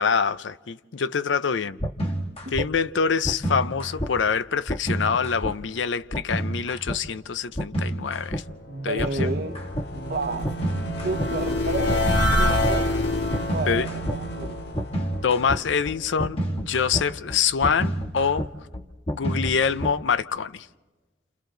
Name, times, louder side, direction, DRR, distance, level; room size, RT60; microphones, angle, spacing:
voice 1, 0.0-1.8 2.5-8.4 8.8-9.4 13.7-13.9 15.2-18.5 19.1-20.7, left 6 dB, 85° left, 0.6 m, -25 dB
sound 1, 1.8-2.7 3.2-4.1 4.7-5.5 6.1-7.0 7.6-8.4 9.0-9.9 10.4-11.3 11.9-20.2, right 1 dB, 35° left, 1.5 m, -29 dB
voice 2, 8.7-9.6 9.9-10.6 11.0-12.9 13.5-14.6, right 2 dB, 55° right, 1.1 m, -31 dB
sound 2, 8.8-16.0, left 1 dB, 65° left, 1.5 m, -27 dB
29.0 x 28.5 x 3.9 m
head